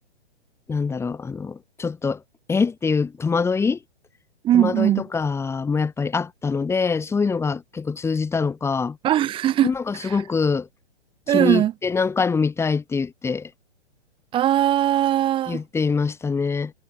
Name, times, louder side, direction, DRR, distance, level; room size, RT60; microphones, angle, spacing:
voice 1, 0.7-2.2 2.5-3.8 4.5-9.0 9.6-10.7 11.3-13.5 15.5-16.7, left 5 dB, 10° left, 1.8 m, -24 dB
voice 2, 4.4-5.0 9.0-9.7 11.3-11.7 14.3-15.6, right 12 dB, 15° right, 1.1 m, -19 dB
hypercardioid pair, 130°, 34 cm